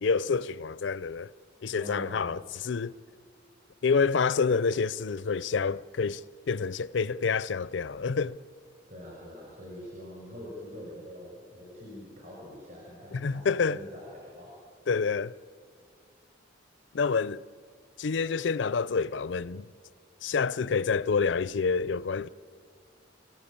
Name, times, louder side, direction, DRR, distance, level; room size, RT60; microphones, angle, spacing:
voice 1, 0.0-1.3 1.6-2.9 3.8-6.2 6.5-8.4 13.1-13.8 14.9-15.3 16.9-17.4 18.0-19.7 20.2-22.3, left 5 dB, 70° left, 0.5 m, -28 dB
voice 2, 1.7-2.5 8.9-14.5, equal, 45° right, 6.1 m, -44 dB
28.0 x 15.0 x 8.7 m
head